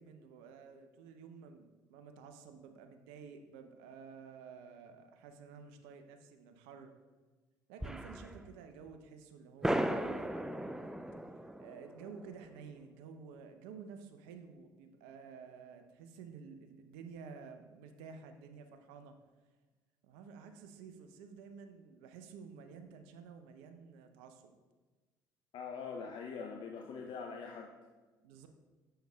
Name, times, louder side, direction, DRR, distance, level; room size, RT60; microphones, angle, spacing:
voice 1, 0.0-6.9 7.7-10.8 11.6-19.2 20.0-24.5 28.2-28.5, right 6 dB, 75° right, 7 dB, 0.6 m, -52 dB
sound 1, 7.8-8.5 8.9-9.0 9.6-12.7, right 1 dB, 5° right, 0.4 m, -37 dB
voice 2, 25.5-27.7, left 5 dB, 55° left, 1 dB, 0.6 m, -43 dB
7.8 x 6.7 x 2.3 m, 1.3 s
hypercardioid pair, 60°, 10 cm